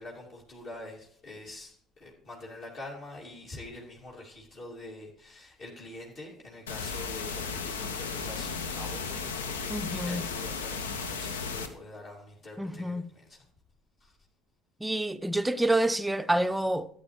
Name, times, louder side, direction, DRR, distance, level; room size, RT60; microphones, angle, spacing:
voice 1, 0.0-13.4 14.0-14.1, left 2 dB, 45° left, 2.4 m, -45 dB
sound 1, 6.7-11.7, left 5 dB, 75° left, 0.7 m, -35 dB
voice 2, 9.7-10.2 12.6-13.1 14.8-16.9, right 1 dB, 10° right, 0.5 m, -28 dB
13.5 x 8.5 x 3.2 m
figure-of-eight pair, 60°, 0 cm